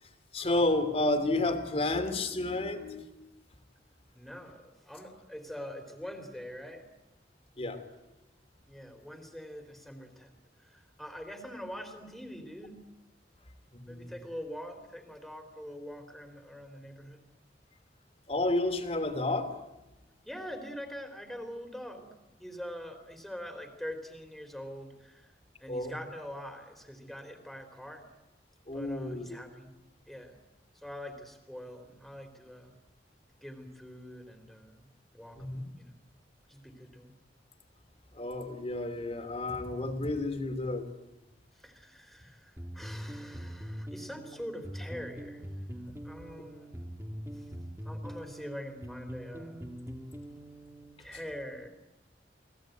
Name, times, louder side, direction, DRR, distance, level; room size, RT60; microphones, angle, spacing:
voice 1, 0.3-3.3 7.6-7.8 13.7-14.1 18.3-19.6 25.7-26.0 28.7-29.3 35.4-35.7 38.1-40.9, left 2 dB, 35° left, 7 dB, 3.0 m, -31 dB
voice 2, 4.1-6.9 8.7-10.3 10.6-12.8 13.9-17.3 20.3-22.1 22.4-25.3 25.6-28.1 28.7-29.7 30.1-30.4 30.8-32.7 33.4-34.9 35.1-36.0 36.5-37.1 41.6-45.4 46.0-46.8 47.3-47.5 47.8-49.7 51.0-51.7, equal, ahead, 7 dB, 3.7 m, -44 dB
sound 1, 42.6-51.0, equal, 15° right, 2.4 m, -43 dB
29.0 x 20.0 x 9.2 m, 0.98 s
head